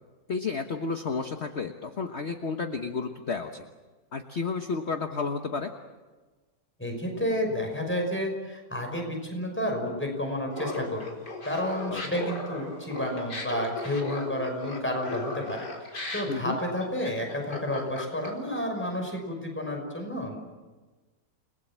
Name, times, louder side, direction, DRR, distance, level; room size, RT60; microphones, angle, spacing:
voice 1, 0.3-3.6 4.1-5.7 11.9-12.3 16.3-16.6, left 4 dB, 45° left, 5 dB, 1.4 m, -32 dB
voice 2, 6.8-11.1 11.4-15.7 16.1-20.4, left 1 dB, 5° left, 2 dB, 5.7 m, -31 dB
Laughter, 10.5-18.6, left 2 dB, 80° left, 4.8 m, -36 dB
30.0 x 20.5 x 7.5 m, 1.3 s
omnidirectional pair, 1.8 m